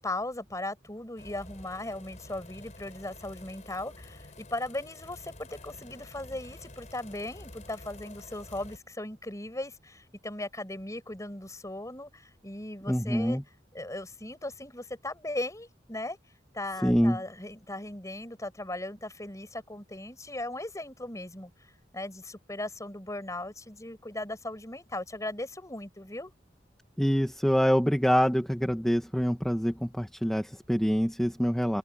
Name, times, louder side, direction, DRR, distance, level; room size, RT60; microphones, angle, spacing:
voice 1, 0.0-13.4 13.7-16.2 16.5-21.5 21.9-26.3, left 1 dB, 20° left, 5.2 m, -38 dB
sound 1, 1.2-8.8, left 2 dB, 45° left, 3.9 m, -49 dB
voice 2, 12.9-13.4 16.8-17.2 27.0-31.8, equal, 5° left, 1.5 m, -25 dB
head